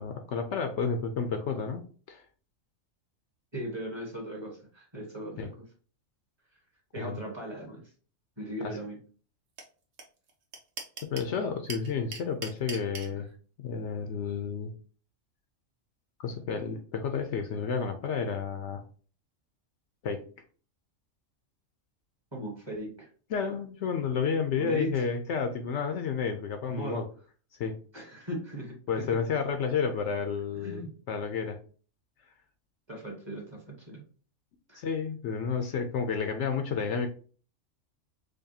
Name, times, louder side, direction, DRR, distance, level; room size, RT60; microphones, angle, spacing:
voice 1, 0.0-1.8 2.1-2.2 5.4-5.5 7.0-7.2 8.6-8.8 11.0-13.3 13.6-14.7 16.2-18.8 20.0-20.2 23.3-27.1 27.6-27.8 28.9-31.6 34.7-37.1, left 6 dB, 70° left, 6 dB, 0.8 m, -31 dB
voice 2, 3.5-5.5 6.9-7.8 8.4-9.0 13.1-13.2 22.3-23.1 24.6-25.0 26.7-27.0 27.9-29.2 30.6-30.9 32.9-34.0 34.7-34.8, right 1 dB, 20° right, -1 dB, 1.2 m, -38 dB
sound 1, 9.6-9.7 10.0-10.1 10.3-11.3 11.7-13.1, right 4 dB, 75° right, 1.2 m, -38 dB
5.1 x 2.2 x 2.7 m, 0.40 s
omnidirectional pair, 1.3 m